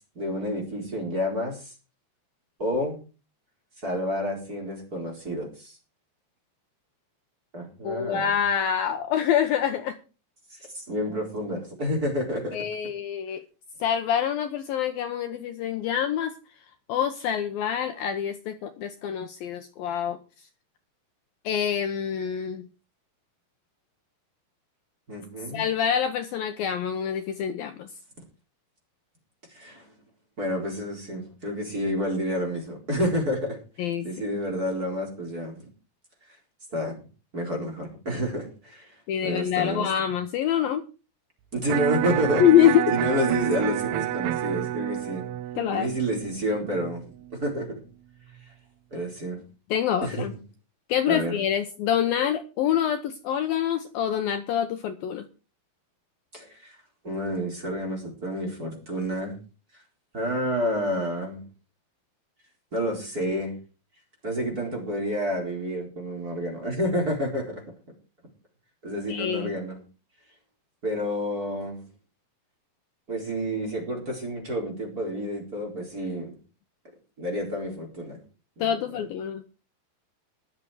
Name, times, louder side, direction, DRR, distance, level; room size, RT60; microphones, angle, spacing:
voice 1, 0.2-1.7 2.6-3.0 3.8-5.8 7.5-8.3 10.5-12.7 25.1-25.6 29.5-29.9 30.4-33.6 34.0-35.6 36.7-37.0 37.3-38.9 39.2-39.9 41.5-42.4 42.9-45.3 45.7-47.0 47.4-47.8 48.4-48.5 48.9-49.4 50.0-50.3 51.1-51.4 56.3-56.8 57.0-59.4 60.1-61.4 62.7-63.5 64.2-67.6 68.8-69.8 70.8-71.9 73.1-76.3 77.2-78.2 78.6-79.0, equal, 20° right, 1 dB, 4.3 m, -29 dB
voice 2, 7.8-10.0 12.5-13.4 13.8-16.3 16.9-20.2 21.4-22.6 25.5-27.9 33.8-34.1 39.1-40.8 42.4-42.8 45.6-45.9 49.7-50.3 50.9-55.3 69.1-69.5 78.6-79.4, left 9 dB, 70° left, 7 dB, 2.5 m, -25 dB
Electric guitar, 41.7-47.7, right 13 dB, 80° right, 2.7 m, -30 dB
21.5 x 7.6 x 4.9 m, 0.34 s
omnidirectional pair, 4.9 m